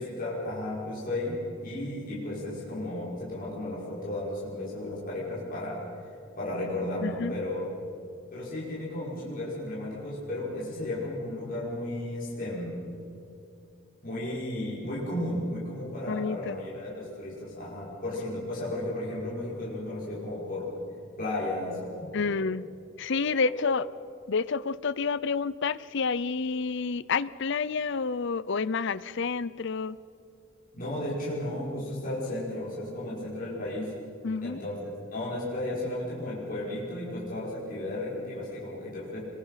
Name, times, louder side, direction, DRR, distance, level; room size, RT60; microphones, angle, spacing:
voice 1, 0.0-7.7 8.3-12.8 14.0-20.7 21.2-22.4 23.4-23.6 30.7-33.9 34.4-34.8 35.1-39.2, left 1 dB, 45° left, -7 dB, 5.6 m, -34 dB
voice 2, 7.0-7.3 16.1-16.6 22.1-22.6 23.0-23.9 24.3-30.0 34.2-34.6, left 5 dB, 60° left, 18 dB, 0.6 m, -29 dB
26.0 x 22.5 x 5.8 m, 2.6 s
head